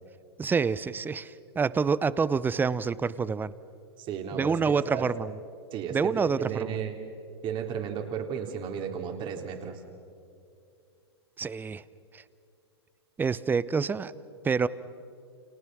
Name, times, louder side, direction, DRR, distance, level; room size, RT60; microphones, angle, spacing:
voice 1, 0.4-3.5 4.3-5.3 5.9-6.8 11.4-11.8 12.1-12.2 13.2-14.1 14.4-14.7, right 5 dB, 15° right, 18 dB, 0.7 m, -27 dB
voice 2, 4.0-5.1 5.7-6.9 7.4-9.8, right 7 dB, 35° right, 4 dB, 3.7 m, -34 dB
29.5 x 29.5 x 6.3 m, 2.4 s
hypercardioid pair, 105°, 14 cm